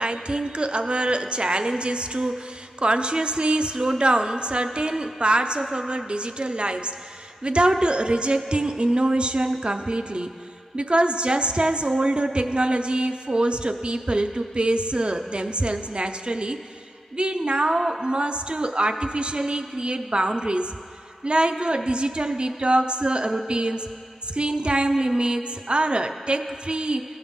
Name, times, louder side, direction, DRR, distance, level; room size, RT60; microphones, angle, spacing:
voice 1, 0.0-10.4 10.7-16.7 17.1-20.8 21.2-23.8 24.3-27.0, right 1 dB, 45° right, 7 dB, 0.5 m, -24 dB
15.5 x 5.7 x 3.6 m, 2.5 s
wide cardioid pair, 45°, 3 cm